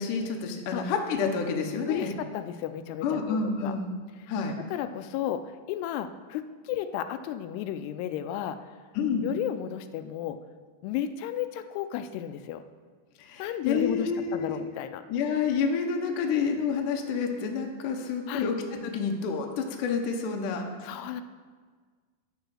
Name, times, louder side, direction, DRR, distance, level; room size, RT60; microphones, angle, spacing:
voice 1, 0.0-2.1 3.0-3.9 4.3-4.6 8.9-9.2 13.2-14.6 15.1-18.6 18.8-21.2, left 5 dB, 70° left, 2 dB, 2.2 m, -29 dB
voice 2, 1.9-3.8 4.7-8.6 9.2-10.4 10.8-12.6 13.4-15.0 18.3-18.5 20.8-21.2, left 11 dB, 85° left, 10 dB, 2.6 m, -33 dB
9.6 x 6.6 x 6.3 m, 1.5 s
omnidirectional pair, 4.6 m